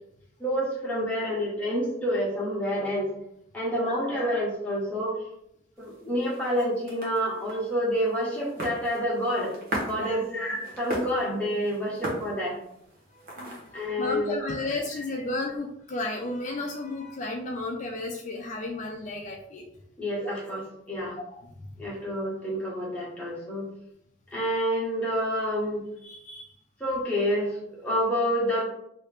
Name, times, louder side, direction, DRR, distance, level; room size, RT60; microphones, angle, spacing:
voice 1, 0.4-3.1 3.5-5.1 5.8-9.5 9.8-12.6 13.7-14.5 20.0-20.6 20.9-21.1 21.8-23.7 24.3-25.8 26.8-28.6, equal, 10° left, -7 dB, 1.2 m, -28 dB
sound 1, 5.8-13.9, right 1 dB, 50° right, 0.9 m, -39 dB
voice 2, 13.1-19.6 20.2-20.3 21.2-21.4 26.0-26.5, left 2 dB, 40° left, 1 dB, 0.4 m, -33 dB
3.1 x 2.8 x 3.3 m, 0.76 s
head